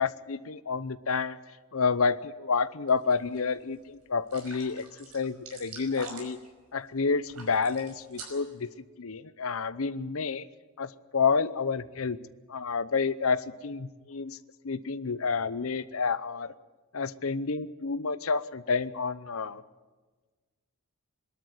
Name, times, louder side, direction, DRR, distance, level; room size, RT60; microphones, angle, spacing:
voice 1, 0.0-1.4 1.7-6.4 6.7-8.7 9.0-10.5 10.8-12.2 12.5-14.4 14.6-16.5 16.9-19.6, left 5 dB, 65° left, 16 dB, 0.8 m, -29 dB
sound 1, 2.9-3.4 3.7-3.8 4.3-6.5 7.3-8.6, right 4 dB, 80° right, 5.5 m, -45 dB
22.5 x 12.5 x 9.6 m, 1.3 s
head